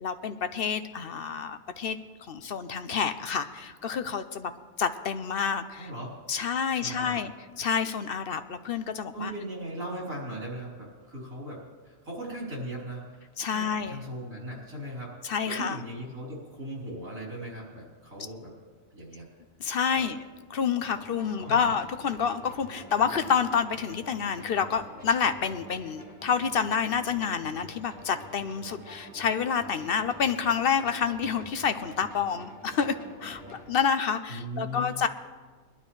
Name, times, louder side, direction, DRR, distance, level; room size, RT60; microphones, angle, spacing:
voice 1, 0.0-2.0 2.3-4.5 4.8-5.9 6.3-7.3 7.6-9.3 13.4-14.0 15.2-15.8 19.6-20.2 20.5-32.9 33.2-33.4 33.7-35.1, left 7 dB, 55° left, 10 dB, 0.7 m, -28 dB
voice 2, 5.8-6.1 6.7-7.2 9.1-13.0 13.5-18.5 18.9-19.3 19.9-20.1 21.3-21.7 34.3-35.1, right 1 dB, 75° right, -4 dB, 4.3 m, -38 dB
sound 1, 20.8-33.6, equal, 5° right, 4.4 m, -47 dB
21.5 x 12.0 x 3.2 m, 1.4 s
omnidirectional pair, 1.4 m